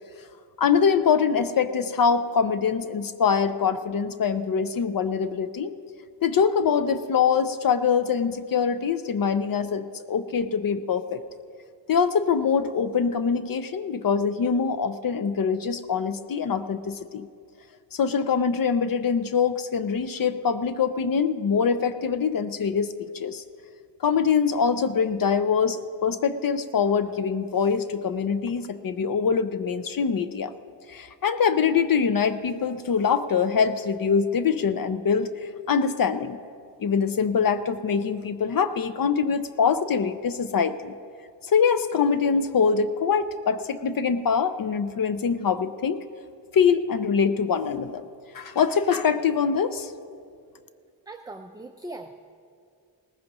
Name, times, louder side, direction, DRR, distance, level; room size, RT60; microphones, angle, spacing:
voice 1, 0.6-5.7 6.2-11.2 11.9-17.3 17.9-23.4 24.0-30.5 30.9-36.4 36.8-41.0 41.4-46.0 46.5-48.0 48.3-49.9, left 6 dB, 50° left, 12 dB, 0.5 m, -24 dB
voice 2, 51.1-52.1, right 2 dB, 10° right, 4 dB, 0.3 m, -39 dB
18.5 x 15.0 x 3.0 m, 2.3 s
wide cardioid pair, 145°, 43 cm